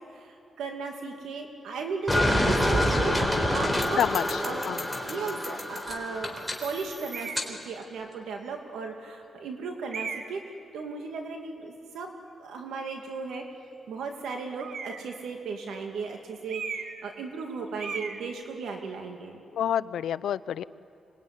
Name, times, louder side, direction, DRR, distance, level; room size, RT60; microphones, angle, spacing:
voice 1, 0.1-4.0 4.4-4.6 5.0-10.4 10.7-12.1 12.4-13.4 13.9-19.4, right 4 dB, 90° right, 3 dB, 2.6 m, -36 dB
sound 1, 2.1-7.5, left 1 dB, 5° right, 3.9 m, -27 dB
voice 2, 4.0-4.8 19.5-20.6, left 10 dB, 85° left, 17 dB, 0.5 m, -28 dB
sound 2, 7.1-7.5 8.3-8.4 9.9-10.5 14.6-15.2 16.5-17.1 17.3-17.5 17.8-18.2, right 5 dB, 75° right, 1.8 m, -36 dB
26.0 x 21.5 x 9.9 m, 2.5 s
cardioid pair, 80°, 0 cm